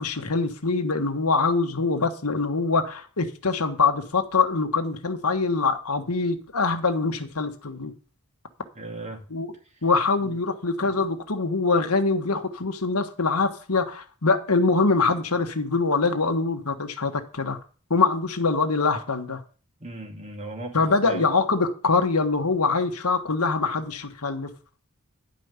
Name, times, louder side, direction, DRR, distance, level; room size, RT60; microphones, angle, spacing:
voice 1, 0.0-7.9 9.3-9.5 9.8-17.6 17.9-19.4 20.7-24.5, left 4 dB, 90° left, 1.5 m, -24 dB
voice 2, 8.7-9.2 10.2-10.4 10.8-11.0 19.8-21.3, right 1 dB, 30° right, 2.4 m, -37 dB
11.0 x 5.4 x 8.1 m
head